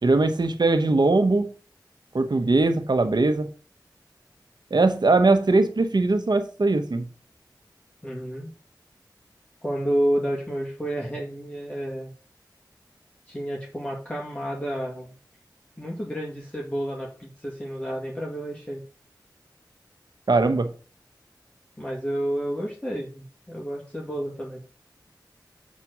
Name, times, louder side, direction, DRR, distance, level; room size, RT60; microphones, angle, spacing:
voice 1, 0.0-1.5 2.1-3.5 4.7-7.0 20.3-20.7, right 3 dB, 65° right, 1.1 m, -20 dB
voice 2, 8.0-8.5 9.6-12.1 13.3-15.1 15.8-18.8 21.8-24.6, equal, 15° left, 2.1 m, -30 dB
7.4 x 4.3 x 6.1 m
cardioid pair, 40°, 8 cm